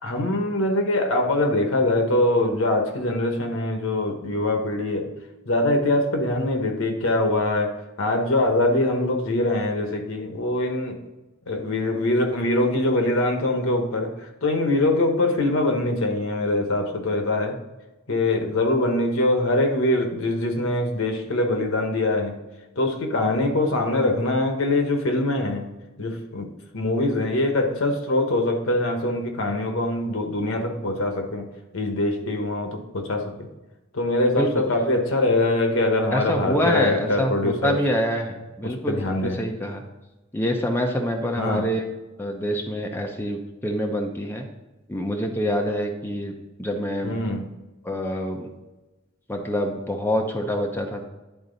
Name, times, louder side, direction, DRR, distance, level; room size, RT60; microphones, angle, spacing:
voice 1, 0.0-5.0 5.4-11.0 11.5-17.6 18.1-22.4 22.8-31.5 31.7-33.5 33.9-37.8 38.6-39.4 41.4-41.7 47.0-47.5, left 2 dB, 75° left, 4 dB, 1.2 m, -23 dB
voice 2, 36.1-39.8 40.3-41.8 42.2-44.5 44.9-46.3 46.6-47.2 47.8-48.5 49.3-51.1, equal, 10° left, 1 dB, 0.7 m, -26 dB
10.5 x 3.9 x 4.0 m, 1.1 s
head